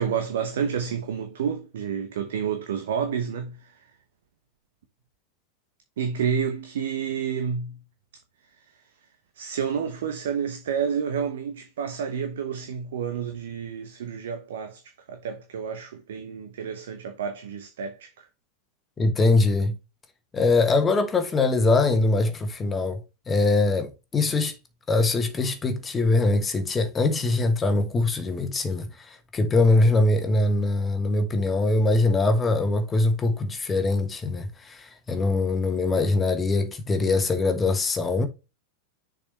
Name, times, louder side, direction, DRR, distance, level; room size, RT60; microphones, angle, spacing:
voice 1, 0.0-3.9 6.0-7.8 8.5-8.7 9.3-18.3, right 7 dB, 60° right, 0.9 m, -30 dB
voice 2, 19.0-19.7 20.3-23.0 23.3-24.5 24.9-38.3, left 2 dB, 15° left, 1.3 m, -22 dB
6.6 x 5.0 x 3.2 m
figure-of-eight pair, 90°, 0 cm